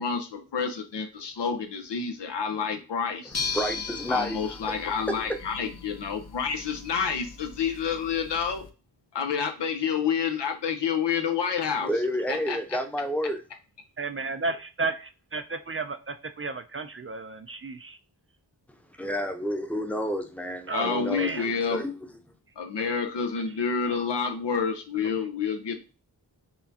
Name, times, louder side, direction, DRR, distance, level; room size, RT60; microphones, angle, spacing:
voice 1, 0.0-3.4 4.1-8.6 9.1-11.9 12.3-12.6 20.7-21.8 22.6-25.9, left 6 dB, 85° left, 0.7 m, -29 dB
sound 1, 3.3-8.7, left 5 dB, 40° left, 0.7 m, -38 dB
voice 2, 3.3-4.6 5.1-5.4 11.8-13.4 19.0-21.3 21.7-22.0, equal, 5° left, 0.7 m, -30 dB
voice 3, 14.0-18.0 20.7-21.5 23.9-24.1 25.0-25.2, right 3 dB, 35° right, 0.4 m, -33 dB
5.6 x 2.3 x 2.7 m
cardioid pair, 40°, 41 cm